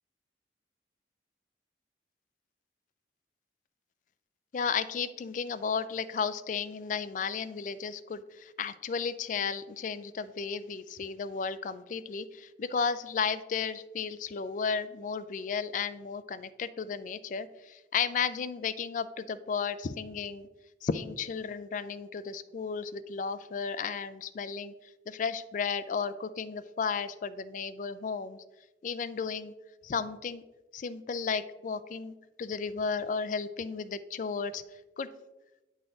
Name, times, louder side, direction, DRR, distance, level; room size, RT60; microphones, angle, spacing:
voice 1, 4.5-20.5 20.8-24.7 25.1-28.4 28.8-29.5 29.8-30.4 30.7-34.6 35.0-35.1, left 5 dB, 45° left, 13 dB, 0.3 m, -34 dB
9.0 x 4.0 x 3.7 m, 1.1 s
head